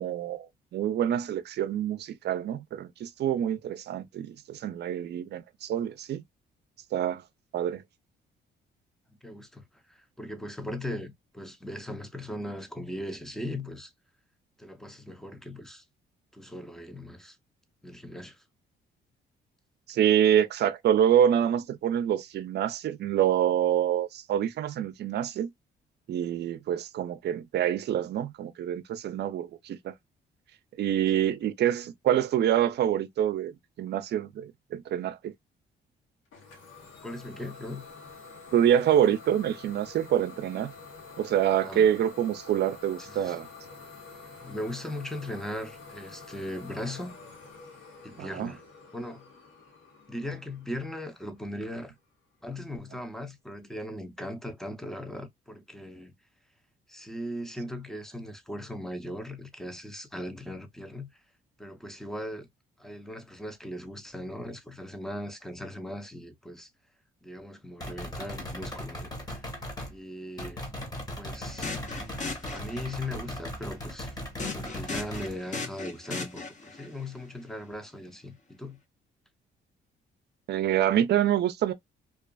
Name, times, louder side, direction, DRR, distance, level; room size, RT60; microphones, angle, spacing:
voice 1, 0.0-6.2 6.9-7.2 7.5-7.8 19.9-25.5 26.1-29.9 30.8-35.3 38.5-40.7 41.2-43.5 48.2-48.5 80.5-81.7, right 10 dB, 60° right, 0.4 m, -26 dB
voice 2, 9.2-13.9 14.6-15.8 16.3-17.4 17.8-18.4 37.0-37.9 41.6-41.9 43.0-43.4 44.4-47.1 48.0-48.6 48.9-49.3 50.1-51.9 52.4-56.2 56.9-61.1 61.6-62.5 62.8-66.7 67.2-69.1 69.4-69.5 69.9-70.7 71.2-71.7 72.5-74.2 74.4-78.8, left 1 dB, ahead, 0.5 m, -38 dB
Idling / Domestic sounds home sounds, 36.3-51.8, left 4 dB, 80° left, 1.0 m, -48 dB
sound 1, 67.8-70.0 70.4-75.4, left 1 dB, 20° left, 1.1 m, -38 dB
sound 2, 71.4-73.1 74.4-76.9, left 3 dB, 40° left, 0.7 m, -37 dB
2.4 x 2.3 x 2.2 m
cardioid pair, 90°, 20 cm